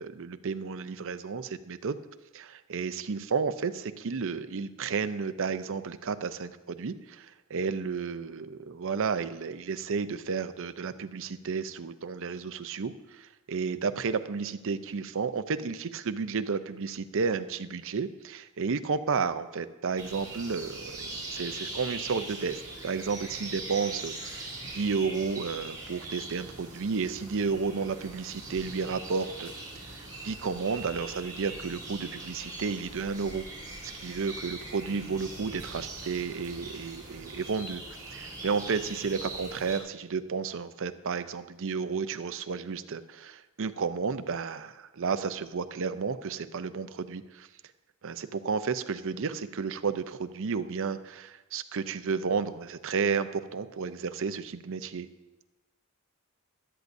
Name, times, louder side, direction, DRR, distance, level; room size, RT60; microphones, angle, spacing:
voice 1, 0.0-2.0 2.3-29.5 29.9-33.5 33.8-47.5 48.0-55.1, right 5 dB, 65° right, 11 dB, 0.6 m, -32 dB
sound 1, 20.0-39.8, right 2 dB, 20° right, 3.3 m, -41 dB
16.5 x 12.0 x 2.6 m, 1.1 s
head